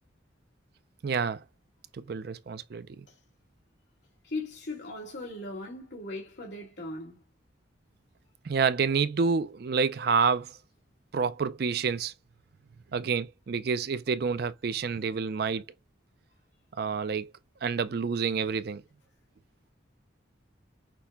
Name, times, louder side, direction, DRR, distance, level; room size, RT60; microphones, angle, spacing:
voice 1, 1.0-1.4 1.9-2.9 8.4-10.5 11.1-12.1 12.9-15.6 16.8-17.3 17.6-18.8, right 5 dB, 55° right, 0.4 m, -28 dB
voice 2, 4.2-7.2, left 2 dB, 60° left, 1.9 m, -38 dB
6.0 x 2.1 x 3.5 m
head